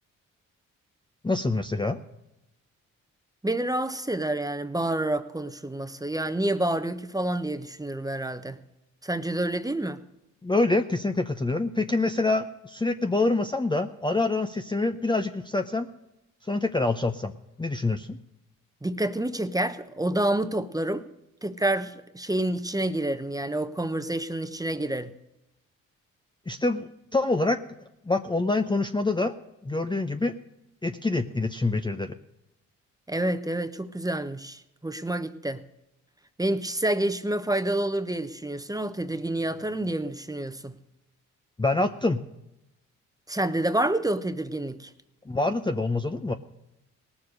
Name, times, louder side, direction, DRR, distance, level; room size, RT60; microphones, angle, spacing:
voice 1, 1.2-2.0 10.4-15.9 16.4-17.3 17.6-18.2 26.5-27.6 28.1-29.4 29.6-30.3 30.8-32.1 41.6-42.2 45.3-46.3, left 2 dB, 15° left, 0.7 m, -26 dB
voice 2, 3.4-8.6 9.0-10.0 18.8-21.1 21.4-25.1 33.1-35.7 36.4-40.8 43.3-44.9, right 1 dB, 10° right, 0.9 m, -28 dB
18.0 x 7.2 x 6.4 m
supercardioid pair, 50°, 37 cm